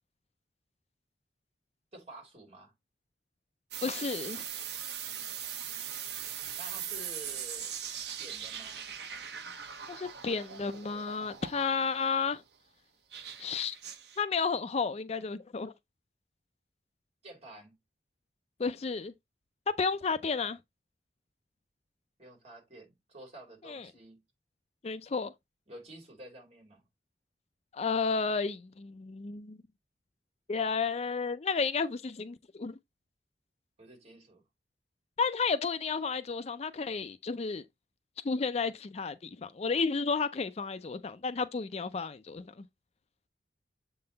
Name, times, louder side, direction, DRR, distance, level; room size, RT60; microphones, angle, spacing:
voice 1, 1.9-2.7 6.6-7.7 8.2-8.8 17.2-17.8 20.1-20.2 22.2-24.2 25.7-26.8 33.8-34.4, right 2 dB, 35° right, 3.0 m, -50 dB
sound 1, 3.7-12.1 13.1-14.2, right 8 dB, 65° right, 1.0 m, -40 dB
voice 2, 3.8-4.4 9.9-12.4 13.4-13.8 14.2-15.7 18.6-19.1 19.8-20.6 23.6-23.9 24.8-25.3 27.7-29.6 30.5-32.8 35.2-37.6 38.2-42.5, left 5 dB, 35° left, 0.4 m, -32 dB
7.6 x 3.9 x 3.9 m
head